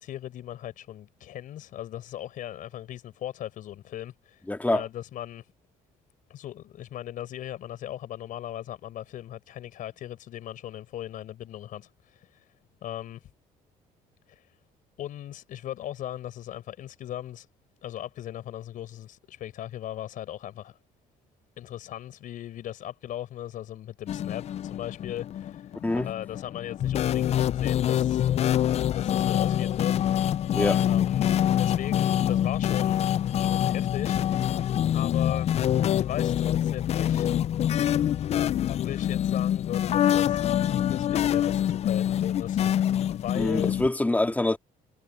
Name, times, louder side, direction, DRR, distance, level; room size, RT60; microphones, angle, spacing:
voice 1, 0.0-4.4 4.7-5.5 6.3-12.5 12.8-13.3 14.3-14.5 15.0-17.5 17.8-20.8 21.6-25.7 26.0-28.2 28.9-30.4 30.9-33.1 33.4-34.6 34.9-35.5 35.9-37.4 38.7-40.5 40.9-43.7, left 12 dB, 65° left, 4.8 m, -38 dB
voice 2, 4.5-4.8 25.8-26.1 30.5-30.8 43.4-44.6, left 2 dB, 10° left, 2.0 m, -25 dB
sound 1, 24.1-43.9, left 10 dB, 45° left, 0.4 m, -25 dB
cardioid pair, 105°, 15 cm